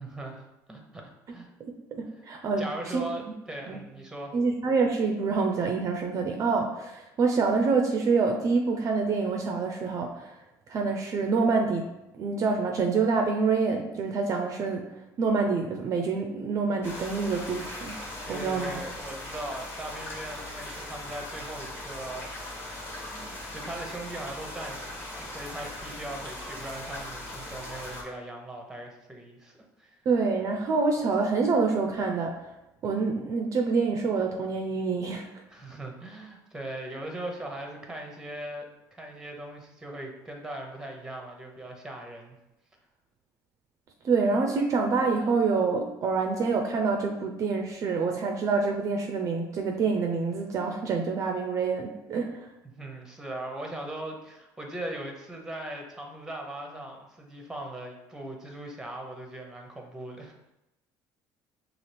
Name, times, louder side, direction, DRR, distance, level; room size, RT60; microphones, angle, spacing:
voice 1, 0.0-1.5 2.1-2.2 2.6-4.3 18.2-22.4 23.1-30.0 35.5-42.4 52.6-60.3, right 1 dB, 5° right, 2 dB, 0.8 m, -39 dB
voice 2, 1.6-3.0 3.7-3.8 4.3-10.3 10.7-14.8 15.2-18.0 18.3-18.7 30.1-32.3 32.8-35.3 44.0-52.5, right 4 dB, 40° right, 3 dB, 0.5 m, -26 dB
sound 1, 16.8-28.0, left 1 dB, 30° left, 1.3 m, -39 dB
5.6 x 2.4 x 3.3 m, 0.90 s
cardioid pair, 115°, 8 cm